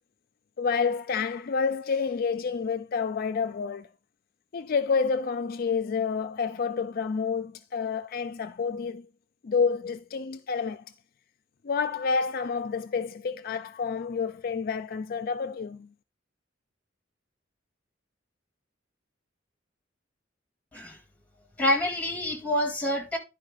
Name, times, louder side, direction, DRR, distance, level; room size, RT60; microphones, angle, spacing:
voice 1, 0.6-3.9 4.5-9.1 9.4-10.8 11.6-15.9, left 5 dB, 50° left, 0.4 m, -29 dB
voice 2, 21.6-23.2, left 1 dB, 10° left, 2.2 m, -27 dB
10.5 x 4.8 x 3.9 m
head